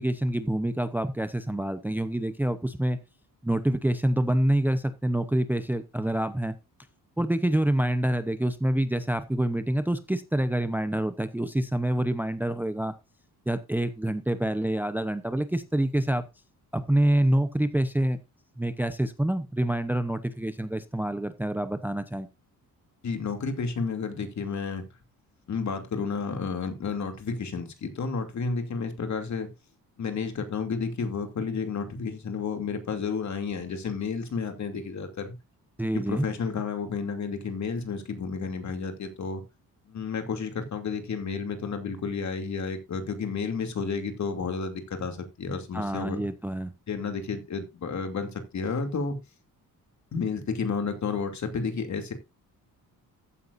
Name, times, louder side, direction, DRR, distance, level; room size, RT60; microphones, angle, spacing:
voice 1, 0.0-3.0 3.4-6.6 7.2-12.9 13.5-16.2 16.7-18.2 18.6-22.3 35.8-36.3 45.7-46.7, right 1 dB, 5° right, 0.8 m, -26 dB
voice 2, 23.0-24.8 25.5-29.5 30.0-35.3 35.9-39.4 39.9-46.3 46.9-49.2 50.1-52.1, left 5 dB, 50° left, 2.7 m, -31 dB
14.5 x 9.2 x 2.6 m
cardioid pair, 115°, 35 cm